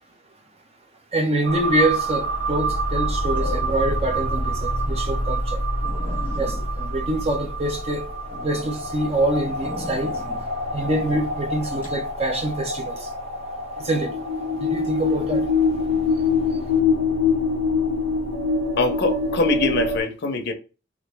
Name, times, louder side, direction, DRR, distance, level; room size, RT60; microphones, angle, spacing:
voice 1, 1.1-5.6 6.4-8.1 8.4-10.2 10.7-13.1 13.8-14.2 14.6-15.5 16.5-16.6, right 1 dB, 30° right, 0.6 m, -25 dB
sound 1, 1.4-20.0, left 2 dB, 75° right, 1.2 m, -25 dB
sound 2, 3.3-4.1 4.5-4.7 5.1-5.2 5.5-5.6 5.8-7.9 8.3-8.7 9.6-10.4 10.8-11.2 11.8-12.0, left 2 dB, 10° right, 1.5 m, -38 dB
voice 2, 18.8-20.5, left 3 dB, 60° left, 0.6 m, -23 dB
3.0 x 2.5 x 3.3 m
head